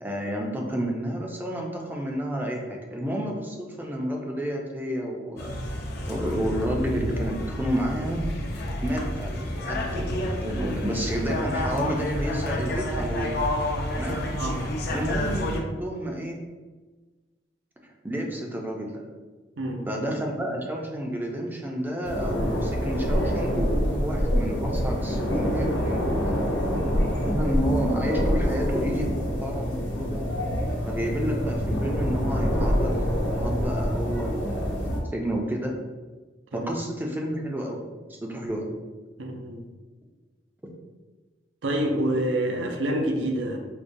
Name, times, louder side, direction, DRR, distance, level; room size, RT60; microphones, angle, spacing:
voice 1, 0.0-5.6 6.1-8.2 8.8-9.3 9.7-10.1 10.4-13.4 13.9-14.2 14.9-16.4 18.0-19.0 19.9-26.4 27.1-30.3 30.9-34.8 35.1-35.8 36.5-38.7, equal, 10° right, 1 dB, 0.4 m, -30 dB
sound 1, 5.4-15.6, left 1 dB, 60° left, 0.5 m, -29 dB
voice 2, 19.6-20.0 36.5-36.7 39.2-39.6 41.6-43.6, right 1 dB, 75° right, 2 dB, 0.6 m, -27 dB
sound 2, 22.0-35.0, equal, 85° left, 0.8 m, -26 dB
4.9 x 2.2 x 2.6 m, 1.3 s
head